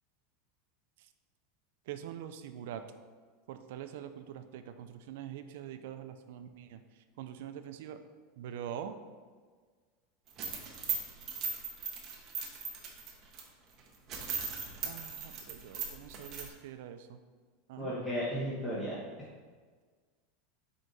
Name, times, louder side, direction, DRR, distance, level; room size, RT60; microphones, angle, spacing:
voice 1, 1.9-2.8 3.5-6.8 7.2-8.0 8.4-9.0 14.8-17.2 17.7-17.9, right 10 dB, 70° right, 9 dB, 0.4 m, -44 dB
sound 1, 10.3-13.4 13.8-13.9 14.1-16.5, right 6 dB, 30° right, 0.9 m, -38 dB
voice 2, 17.8-19.0, equal, 15° left, -8 dB, 1.1 m, -34 dB
5.0 x 4.6 x 4.0 m, 1.5 s
supercardioid pair, 155°, 0 cm